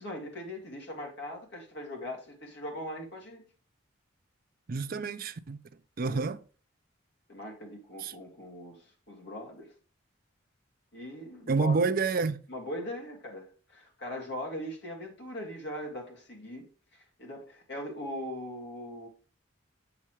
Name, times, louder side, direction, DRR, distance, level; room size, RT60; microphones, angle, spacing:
voice 1, 0.0-3.4 6.0-6.3 7.3-9.7 10.9-11.8 12.5-16.7 16.9-19.1, left 1 dB, 55° left, 2.1 m, -40 dB
voice 2, 4.7-5.6 6.0-6.4 8.0-8.1 11.5-12.4, right 4 dB, 45° right, 0.4 m, -28 dB
7.4 x 6.9 x 3.1 m
head